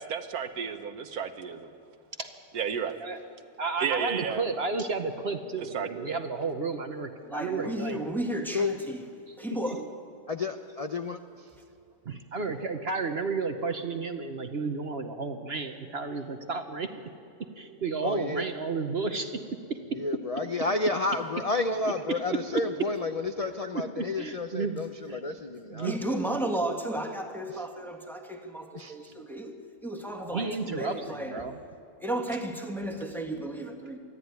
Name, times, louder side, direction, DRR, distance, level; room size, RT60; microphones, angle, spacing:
voice 1, 0.0-1.7 2.5-3.0 3.8-4.4 5.7-6.2, right 7 dB, 75° right, 8 dB, 1.5 m, -32 dB
voice 2, 3.6-8.0 9.3-9.4 12.0-17.1 17.4-20.0 21.8-22.2 23.7-25.2 25.7-26.0 30.3-31.6, right 4 dB, 50° right, 7 dB, 1.0 m, -32 dB
voice 3, 7.3-9.0 9.4-9.9 25.8-31.5 32.0-34.0, right 1 dB, ahead, 3 dB, 1.6 m, -33 dB
voice 4, 10.3-11.5 18.0-18.4 19.9-26.4 27.5-27.6 28.7-29.1, left 3 dB, 45° left, 7 dB, 0.4 m, -31 dB
23.0 x 13.5 x 9.5 m, 2.4 s
omnidirectional pair, 1.6 m